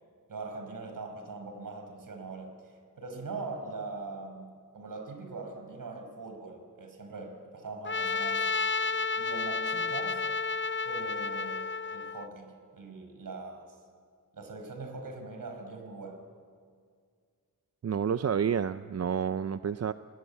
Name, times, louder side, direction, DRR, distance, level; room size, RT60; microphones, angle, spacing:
voice 1, 0.3-4.5 4.7-8.6 9.2-10.2 10.8-13.7 14.3-16.2, right 3 dB, 65° right, 5 dB, 5.2 m, -42 dB
Trumpet, 7.8-12.3, left 4 dB, 30° left, 0.6 m, -31 dB
voice 2, 17.8-19.9, right 7 dB, 45° right, 12 dB, 0.6 m, -29 dB
29.0 x 20.0 x 8.4 m, 2.1 s
wide cardioid pair, 85°, 36 cm